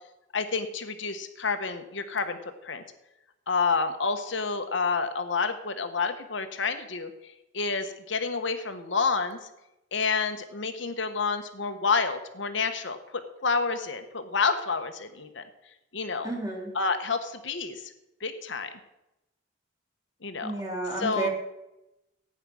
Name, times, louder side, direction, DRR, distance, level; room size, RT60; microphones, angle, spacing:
voice 1, 0.3-2.8 3.5-7.1 7.5-9.4 9.9-15.4 15.9-16.3 16.7-17.9 18.2-18.7 20.2-20.5 21.0-21.3, left 4 dB, 65° left, 8 dB, 1.2 m, -29 dB
voice 2, 16.2-16.7 20.4-21.3, right 3 dB, 20° right, -1 dB, 3.4 m, -31 dB
15.5 x 9.6 x 6.3 m, 0.93 s
head